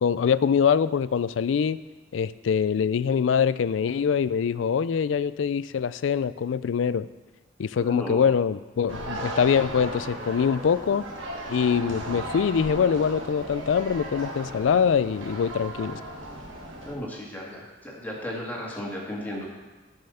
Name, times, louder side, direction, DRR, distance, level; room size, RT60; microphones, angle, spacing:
voice 1, 0.0-1.8 2.1-7.1 7.6-11.0 11.5-16.0, left 7 dB, 70° left, 17 dB, 0.3 m, -24 dB
voice 2, 7.8-8.3 16.8-19.5, left 1 dB, 10° left, -3 dB, 1.9 m, -34 dB
sound 1, 8.9-16.9, right 1 dB, 85° right, 1.6 m, -36 dB
12.5 x 5.5 x 5.6 m, 1.2 s
head